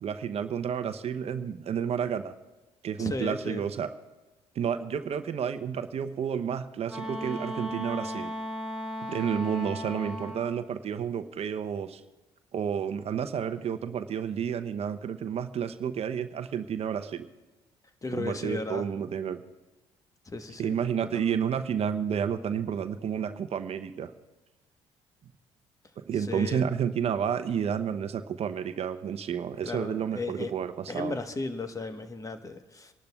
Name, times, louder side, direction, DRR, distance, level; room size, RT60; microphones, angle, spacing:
voice 1, 0.0-2.3 2.8-3.9 4.6-8.3 9.1-12.0 12.5-17.3 18.1-19.4 20.6-24.1 26.0-31.2, right 8 dB, 55° right, 10 dB, 0.7 m, -30 dB
voice 2, 3.0-3.6 18.0-18.8 20.3-20.8 21.1-21.4 26.3-26.6 29.7-30.5 30.9-32.9, left 3 dB, 25° left, 8 dB, 1.1 m, -35 dB
Wind instrument woodwind instrument, 6.9-10.6, equal, 5° right, 2.0 m, -36 dB
28.5 x 11.5 x 2.3 m, 1.1 s
supercardioid pair, 60°, 13 cm